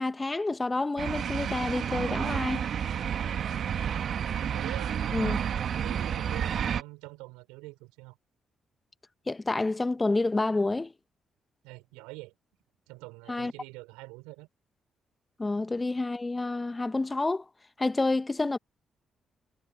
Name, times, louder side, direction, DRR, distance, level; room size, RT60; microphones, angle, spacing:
voice 1, 0.0-2.7 5.1-5.4 9.3-10.9 13.3-13.5 15.4-17.4 17.8-18.6, left 2 dB, 25° left, 1.0 m, -28 dB
sound 1, 1.0-6.8, right 8 dB, 60° right, 1.4 m, -30 dB
voice 2, 3.3-3.8 4.3-5.3 5.8-8.2 11.6-12.3 12.9-14.5, right 24 dB, 85° right, 5.2 m, -45 dB
hypercardioid pair, 45°, 0 cm